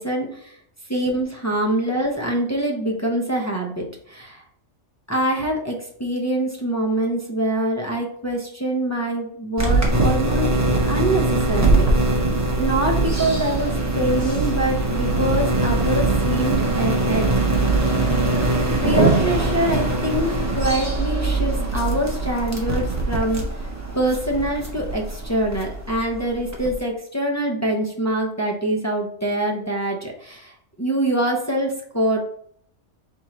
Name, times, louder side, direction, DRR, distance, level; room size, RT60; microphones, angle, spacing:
voice 1, 0.0-0.6 0.9-4.4 5.1-12.2 12.5-17.3 18.8-23.7 23.9-32.2, right 1 dB, 20° left, -1 dB, 0.6 m, -25 dB
sound 1, 9.6-26.8, right 2 dB, 15° right, 0.8 m, -22 dB
4.4 x 3.8 x 3.0 m, 0.65 s
omnidirectional pair, 1.3 m